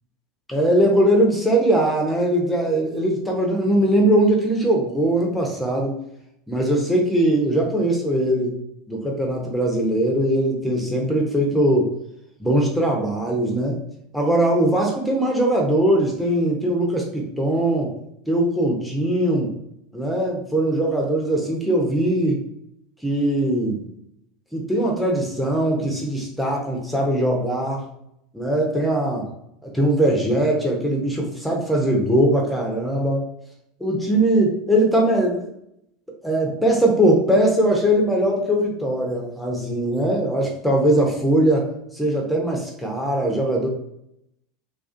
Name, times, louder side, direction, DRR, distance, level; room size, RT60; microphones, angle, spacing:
voice 1, 0.5-6.0 6.5-8.6 8.9-12.0 12.4-13.8 14.1-17.9 18.3-19.5 19.9-22.4 23.0-23.9 24.5-27.8 28.3-29.3 29.6-33.2 33.8-35.5 36.2-41.7 41.9-43.7, right 1 dB, 5° left, -1 dB, 0.6 m, -20 dB
2.4 x 2.4 x 2.4 m, 0.78 s
hypercardioid pair, 85°, 0 cm